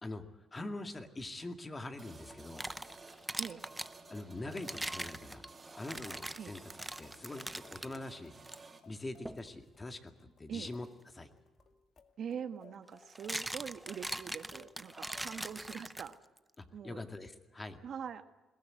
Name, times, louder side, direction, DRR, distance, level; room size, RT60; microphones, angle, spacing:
voice 1, 0.0-2.7 4.1-5.5 5.8-6.7 7.0-8.3 8.9-10.1 10.4-10.9 11.1-11.3 15.8-15.9 16.8-17.8, left 2 dB, 25° left, 7 dB, 2.1 m, -43 dB
sound 1, 1.7-16.1, left 6 dB, 55° left, 2.0 m, -65 dB
sound 2, 2.0-8.8, right 3 dB, 30° right, 2.8 m, -55 dB
sound 3, 2.3-3.9 4.5-8.0 8.4-8.6 9.2-9.5 11.6-11.7 12.9-16.4, right 1 dB, 5° right, 0.7 m, -41 dB
voice 2, 12.2-16.2 16.7-17.0 17.8-18.2, right 7 dB, 60° right, 9 dB, 1.4 m, -43 dB
21.5 x 17.0 x 9.6 m, 1.1 s
cardioid pair, 90°, 0 cm